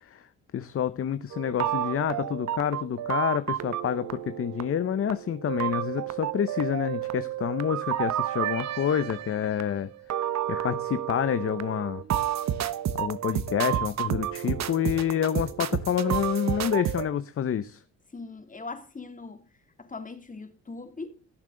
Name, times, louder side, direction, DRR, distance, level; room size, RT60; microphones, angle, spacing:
voice 1, 0.5-9.9 10.5-12.0 12.9-17.8, left 9 dB, 45° left, 0.8 m, -28 dB
sound 1, 1.3-17.1, right 11 dB, 60° right, 1.2 m, -31 dB
voice 2, 18.1-19.4 19.8-21.1, left 3 dB, 25° left, 2.8 m, -40 dB
17.0 x 7.3 x 3.8 m
cardioid pair, 90°, 30 cm